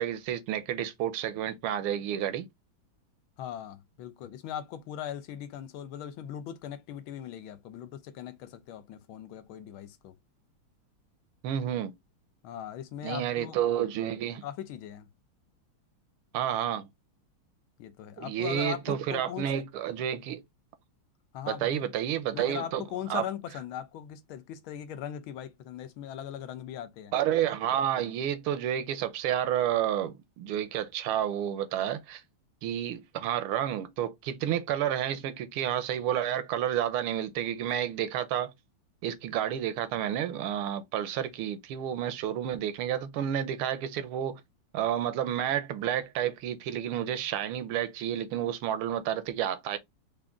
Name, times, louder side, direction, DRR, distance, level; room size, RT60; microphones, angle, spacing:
voice 1, 0.0-2.5 11.4-11.9 13.0-14.4 16.3-16.9 18.2-20.4 21.5-22.8 23.1-23.2 27.1-32.2 32.6-38.5 39.0-44.4 44.7-49.8, right 10 dB, 80° right, 1.6 m, -30 dB
voice 2, 3.4-10.1 12.4-13.6 14.4-15.1 17.8-19.5 21.3-21.9 22.3-27.1, left 10 dB, 75° left, 1.4 m, -39 dB
5.0 x 2.5 x 3.4 m
omnidirectional pair, 2.4 m